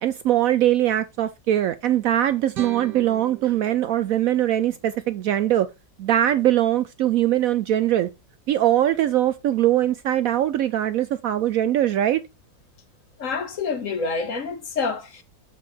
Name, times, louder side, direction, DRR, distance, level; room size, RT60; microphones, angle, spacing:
voice 1, 0.0-5.7 6.0-8.1 8.5-12.2, right 12 dB, 70° right, 0.8 m, -21 dB
sound 1, 2.5-5.6, right 8 dB, 90° right, 1.7 m, -41 dB
voice 2, 13.2-15.2, left 4 dB, 55° left, 1.3 m, -27 dB
7.7 x 4.6 x 4.2 m
omnidirectional pair, 1.8 m